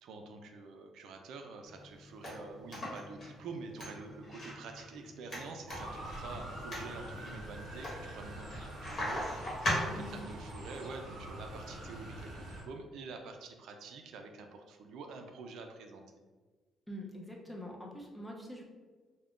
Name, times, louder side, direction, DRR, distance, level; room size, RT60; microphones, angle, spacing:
voice 1, 0.0-16.3, right 3 dB, 75° right, 4 dB, 0.3 m, -47 dB
sound 1, 1.7-10.3, left 1 dB, 35° left, 1.1 m, -40 dB
Motor vehicle (road) / Siren, 5.7-12.6, right 1 dB, 55° right, 0.9 m, -45 dB
voice 2, 16.9-18.6, equal, 5° left, -1 dB, 0.4 m, -44 dB
2.4 x 2.1 x 3.5 m, 1.4 s
cardioid pair, 135°, 0 cm